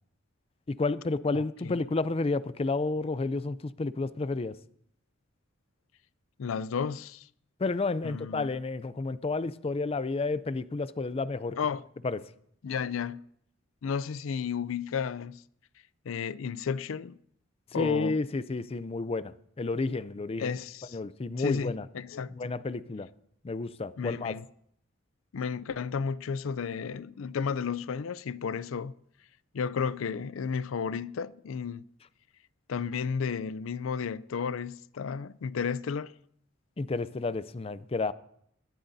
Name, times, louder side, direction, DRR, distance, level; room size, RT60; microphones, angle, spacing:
voice 1, 0.7-4.6 7.6-11.6 12.0-12.2 17.7-20.6 20.9-21.8 22.3-23.1 23.4-24.4 36.8-38.1, left 3 dB, 30° left, 0.4 m, -31 dB
voice 2, 1.3-1.7 6.4-7.3 8.0-8.5 11.6-11.8 12.6-13.3 13.8-15.4 16.1-17.2 17.7-18.2 20.4-21.0 21.4-22.5 24.0-24.5 25.3-28.9 29.5-31.8 32.7-36.1, left 6 dB, 85° left, 0.4 m, -33 dB
21.0 x 14.5 x 2.7 m
head